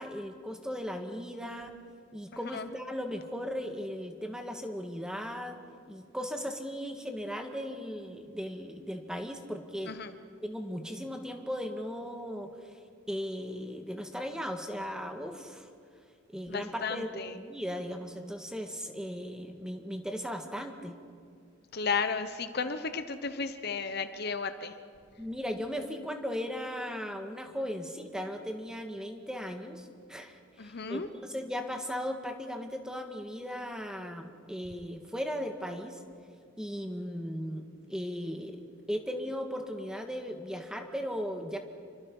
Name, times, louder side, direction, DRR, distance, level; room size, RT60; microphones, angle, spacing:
voice 1, 0.0-1.7 2.1-5.6 5.9-10.0 10.4-12.8 13.1-15.7 16.3-20.9 25.2-36.0 36.6-38.6 38.9-41.6, equal, 5° right, 4 dB, 1.8 m, -37 dB
voice 2, 16.5-17.3 21.7-24.7 30.6-31.1, left 5 dB, 55° left, 10 dB, 1.0 m, -33 dB
28.5 x 23.5 x 5.5 m, 2.2 s
head